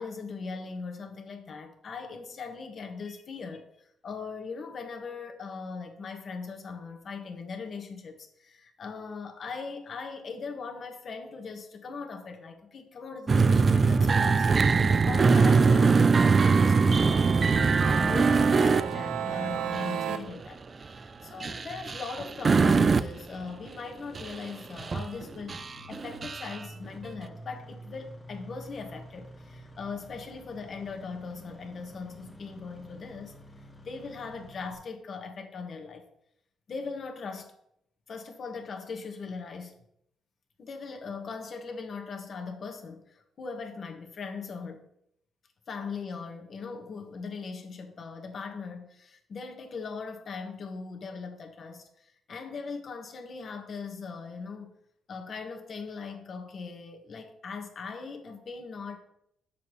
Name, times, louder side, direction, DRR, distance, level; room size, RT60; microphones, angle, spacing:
voice 1, 0.0-33.3 33.8-36.1 36.7-37.5 38.1-39.8 40.6-44.9 45.7-54.7 55.1-59.0, left 4 dB, 50° left, 4 dB, 1.4 m, -40 dB
sound 1, 13.3-19.3 19.7-19.9 20.3-20.5 21.4-23.2 23.7-23.8 24.1-24.5 24.8-25.2 25.5-26.6, right 4 dB, 35° right, 0.3 m, -22 dB
Engine starting, 16.7-34.7, equal, 15° left, 1.5 m, -49 dB
sound 2, 16.9-20.2, right 9 dB, 90° right, 0.7 m, -34 dB
8.2 x 6.9 x 3.2 m, 0.75 s
cardioid pair, 90°, 0 cm